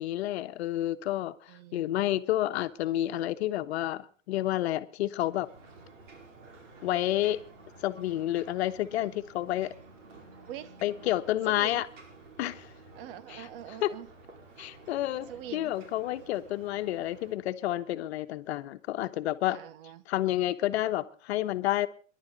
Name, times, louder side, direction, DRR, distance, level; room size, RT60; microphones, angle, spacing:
voice 1, 0.0-5.5 6.8-7.4 7.8-9.7 10.8-11.9 12.4-12.7 13.3-13.5 13.8-13.9 14.6-19.6 20.1-21.9, left 14 dB, 55° left, 10 dB, 1.2 m, -30 dB
voice 2, 1.5-1.8 10.5-10.8 11.5-11.9 12.9-14.1 15.3-15.8 19.5-20.0, right 11 dB, 45° right, 14 dB, 1.4 m, -43 dB
Ocean, 5.1-17.4, right 3 dB, 70° right, 4.8 m, -52 dB
28.0 x 11.5 x 4.1 m, 0.43 s
hypercardioid pair, 140°, 39 cm